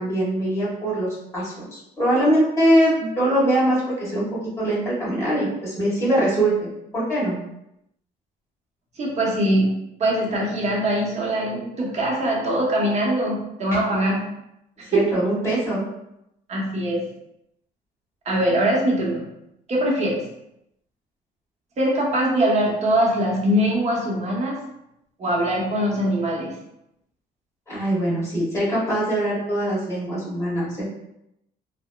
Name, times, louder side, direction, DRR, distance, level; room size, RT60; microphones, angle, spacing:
voice 1, 0.0-6.5 6.9-7.4 14.9-15.8 27.7-30.8, right 1 dB, 15° left, -9 dB, 1.4 m, -22 dB
voice 2, 9.0-9.7 10.0-14.2 14.8-15.2 16.5-17.1 18.2-19.2 19.7-20.2 21.8-24.6 25.2-26.6, right 1 dB, 40° right, -3 dB, 0.9 m, -22 dB
2.9 x 2.1 x 2.2 m, 0.83 s
cardioid pair, 110°, 17 cm